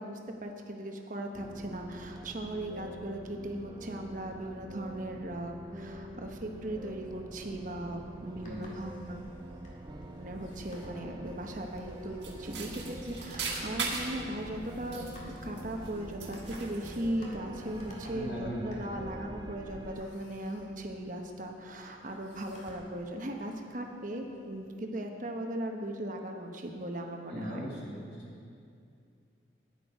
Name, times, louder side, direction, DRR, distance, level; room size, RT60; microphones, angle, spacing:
voice 1, 0.0-9.3 10.2-27.7, right 1 dB, 45° right, 3 dB, 1.1 m, -38 dB
sound 1, 1.3-20.0, right 1 dB, 20° right, 0.6 m, -45 dB
sound 2, 7.7-24.7, left 1 dB, 40° left, 2.0 m, -56 dB
voice 2, 8.4-8.7 18.1-18.6 27.3-28.4, equal, 65° left, -5 dB, 2.8 m, -39 dB
sound 3, 12.2-14.2 14.7-15.9 16.2-17.1, right 4 dB, 70° right, 1.7 m, -38 dB
12.0 x 9.8 x 4.8 m, 2.4 s
head